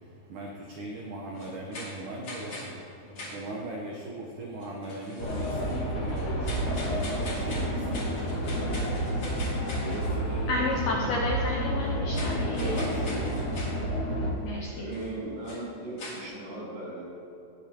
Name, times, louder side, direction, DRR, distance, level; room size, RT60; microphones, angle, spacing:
voice 1, 0.0-10.7 12.3-13.9, right 1 dB, 80° right, -2 dB, 1.8 m, -39 dB
sound 1, 1.3-2.8 3.2-3.4 4.6-10.2 11.8-13.8 14.9-15.1 15.4-15.6 16.0-16.2, left 1 dB, 35° left, 2.6 m, -41 dB
sound 2, 5.2-14.3, equal, 55° left, 1.1 m, -30 dB
voice 2, 10.5-12.9 14.4-14.9, left 2 dB, 80° left, -2 dB, 2.0 m, -31 dB
voice 3, 14.7-17.0, right 2 dB, 40° right, -7 dB, 3.5 m, -38 dB
19.5 x 8.5 x 2.9 m, 3.0 s
omnidirectional pair, 5.0 m